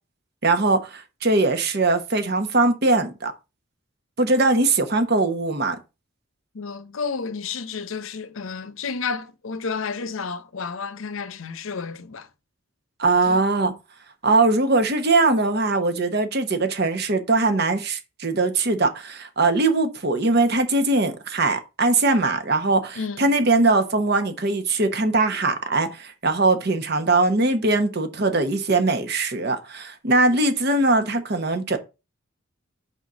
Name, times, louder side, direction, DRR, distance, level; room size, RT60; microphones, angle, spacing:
voice 1, 0.4-3.3 4.2-5.8 13.0-13.7 14.2-31.8, right 3 dB, 50° right, 1.1 m, -21 dB
voice 2, 6.5-12.3 13.3-13.4 23.0-23.3, left 5 dB, 70° left, 0.7 m, -31 dB
5.4 x 4.1 x 6.0 m
head